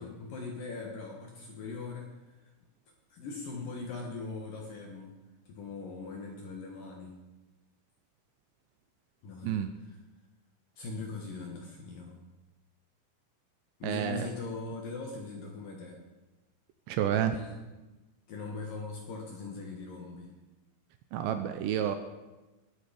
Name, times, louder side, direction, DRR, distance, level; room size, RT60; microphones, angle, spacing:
voice 1, 0.0-2.5 3.1-5.1 5.5-7.2 9.2-9.6 10.8-12.2 13.8-16.0 17.3-17.6 18.3-20.4, left 3 dB, 65° left, 0 dB, 2.3 m, -40 dB
voice 2, 13.8-14.3 16.9-17.4 21.1-22.0, right 10 dB, 80° right, 8 dB, 2.6 m, -29 dB
20.5 x 8.2 x 5.0 m, 1.1 s
omnidirectional pair, 5.5 m